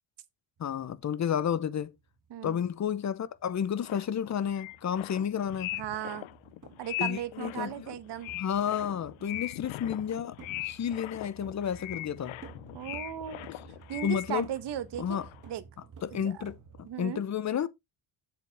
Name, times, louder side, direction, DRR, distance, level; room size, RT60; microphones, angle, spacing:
voice 1, 0.6-2.0 2.4-5.8 7.0-7.7 8.3-10.4 10.6-12.4 14.0-14.5 15.0-15.3 16.0-17.7, left 8 dB, 40° left, 0.7 m, -31 dB
sound 1, 0.6-16.9, right 6 dB, 40° right, 1.9 m, -53 dB
voice 2, 2.3-2.6 5.7-6.3 6.8-8.3 12.7-13.5 13.9-15.2 15.5-15.6 16.1-16.4 16.8-17.2, right 10 dB, 65° right, 1.1 m, -36 dB
sound 2, 3.8-14.7 15.0-15.5, left 18 dB, 80° left, 0.6 m, -40 dB
7.6 x 7.1 x 3.4 m
cardioid pair, 155°, 46 cm